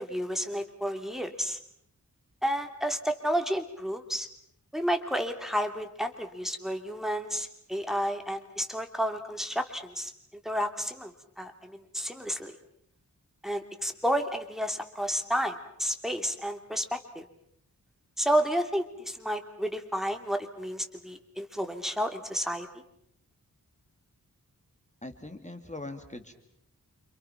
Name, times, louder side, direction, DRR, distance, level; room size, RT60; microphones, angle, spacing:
voice 1, 0.0-1.6 2.4-4.3 4.7-10.1 10.4-11.1 11.4-12.5 13.4-17.2 18.2-22.7, equal, ahead, 5 dB, 2.9 m, -31 dB
voice 2, 25.0-26.3, left 2 dB, 20° left, 6 dB, 2.5 m, -41 dB
29.5 x 27.0 x 5.9 m, 0.72 s
wide cardioid pair, 70°, 33 cm